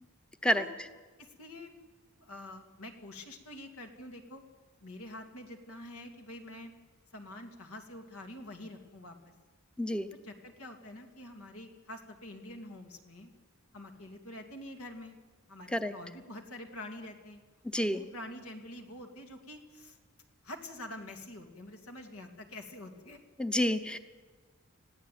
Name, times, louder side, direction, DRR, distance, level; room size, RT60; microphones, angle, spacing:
voice 1, 1.2-1.7 2.2-4.4 4.8-6.7 7.1-9.3 10.2-13.3 13.7-15.2 15.5-17.4 17.7-20.0 20.4-23.2, left 1 dB, 85° left, 4 dB, 2.7 m, -46 dB
voice 2, 9.8-10.1 15.7-15.9 17.7-18.0 23.4-24.0, equal, 5° left, 10 dB, 0.8 m, -28 dB
21.0 x 15.0 x 9.4 m, 1.4 s
head